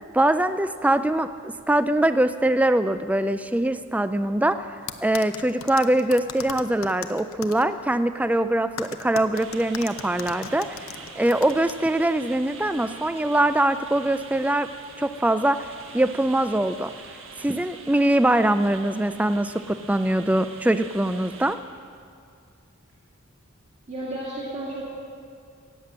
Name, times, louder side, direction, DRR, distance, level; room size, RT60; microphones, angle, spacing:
voice 1, 0.1-4.7 5.0-14.7 15.0-15.7 15.9-16.9 17.4-21.6, right 1 dB, 5° right, 11 dB, 0.3 m, -23 dB
sound 1, 4.9-7.6 8.8-11.7, left 7 dB, 75° left, 0.8 m, -37 dB
sound 2, 9.3-21.6, right 4 dB, 65° right, 1.5 m, -44 dB
voice 2, 23.9-24.9, right 1 dB, 35° right, -6 dB, 2.1 m, -32 dB
16.5 x 9.1 x 7.5 m, 2.3 s
head